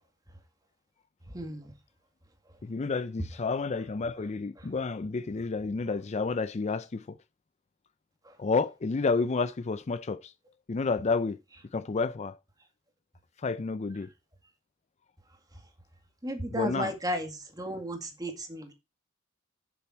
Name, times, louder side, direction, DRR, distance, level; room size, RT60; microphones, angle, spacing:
voice 1, 1.3-1.7 16.2-17.3 17.6-18.7, right 1 dB, 20° right, 2.1 m, -33 dB
voice 2, 2.6-7.2 8.4-10.3 10.7-11.4 11.7-12.4 13.4-14.1 16.5-17.0, left 4 dB, 35° left, 0.4 m, -30 dB
10.5 x 7.0 x 4.4 m
head